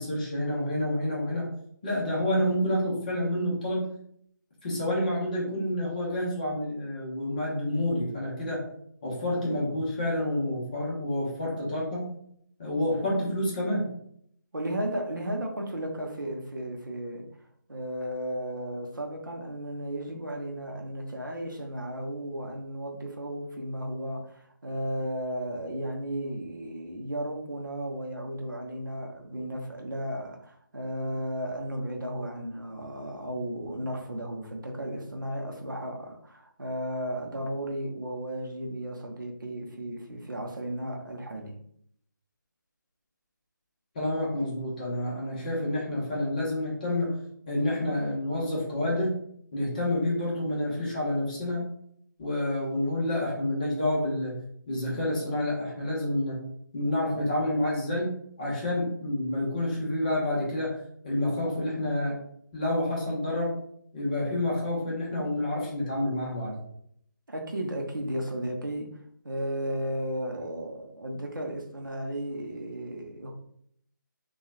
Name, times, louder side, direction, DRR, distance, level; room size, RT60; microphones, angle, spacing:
voice 1, 0.0-1.5 1.8-3.9 4.6-8.6 9.0-12.0 12.6-13.9 43.9-47.1 47.5-49.2 49.5-51.6 52.2-54.4 54.7-56.4 56.7-60.8 61.0-62.2 62.5-63.5 63.9-66.6, left 1 dB, 25° left, -5 dB, 0.9 m, -28 dB
voice 2, 14.5-17.3 17.7-41.6 67.3-73.3, right 1 dB, 75° right, 1 dB, 0.7 m, -34 dB
2.9 x 2.3 x 2.4 m, 0.68 s
figure-of-eight pair, 155°, 11 cm